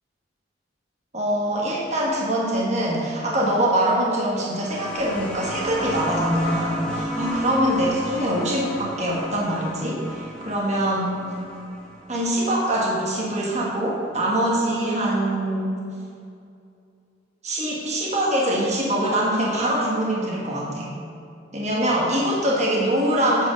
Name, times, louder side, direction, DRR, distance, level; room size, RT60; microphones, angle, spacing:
voice 1, 1.1-11.2 12.1-15.7 17.4-20.9 21.5-23.5, right 1 dB, 40° right, -4 dB, 1.3 m, -23 dB
sound 1, 4.4-13.6 14.8-14.9, equal, 5° left, 1.1 m, -33 dB
9.3 x 4.8 x 5.0 m, 2.4 s
head